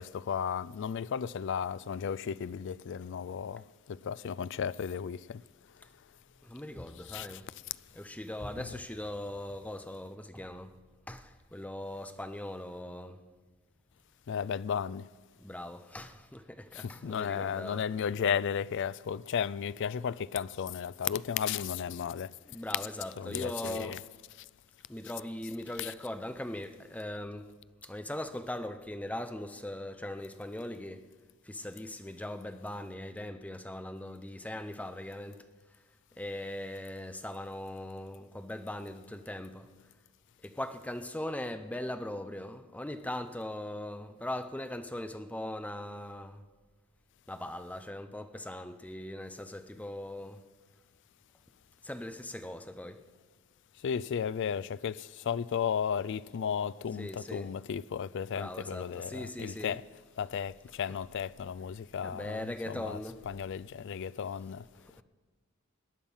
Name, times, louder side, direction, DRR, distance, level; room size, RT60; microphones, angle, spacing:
voice 1, 0.0-5.4 7.1-7.4 14.3-15.1 16.7-22.3 23.2-24.0 25.8-25.9 53.8-59.8 60.2-63.0 63.3-64.6, left 7 dB, 60° left, 0.4 m, -34 dB
voice 2, 6.4-7.5 7.9-10.8 11.1-13.2 15.4-17.9 22.4-24.0 24.9-27.5 27.8-31.1 31.4-35.4 36.2-39.7 40.4-46.4 47.3-50.4 51.8-53.0 56.9-57.5 58.3-59.8 60.9-61.0 62.0-63.3 64.8-65.0, left 1 dB, 5° left, 0.6 m, -40 dB
19.0 x 10.5 x 5.6 m
head